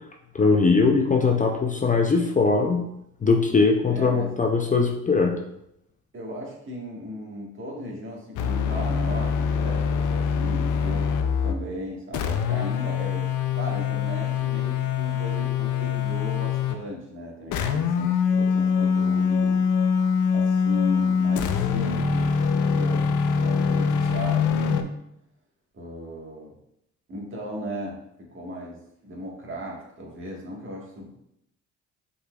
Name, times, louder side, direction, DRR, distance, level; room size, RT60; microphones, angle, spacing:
voice 1, 0.3-2.9 3.2-5.3, left 4 dB, 25° left, 2 dB, 0.5 m, -21 dB
voice 2, 3.9-4.3 6.1-11.1 11.4-13.3 13.6-19.6 20.3-24.9 25.7-26.5 27.1-31.1, equal, 40° right, -2 dB, 1.6 m, -37 dB
sound 1, 8.4-11.6 12.1-16.8 17.5-24.8, left 6 dB, 80° left, 0.5 m, -24 dB
5.5 x 4.0 x 2.4 m, 0.78 s
cardioid pair, 90°, 30 cm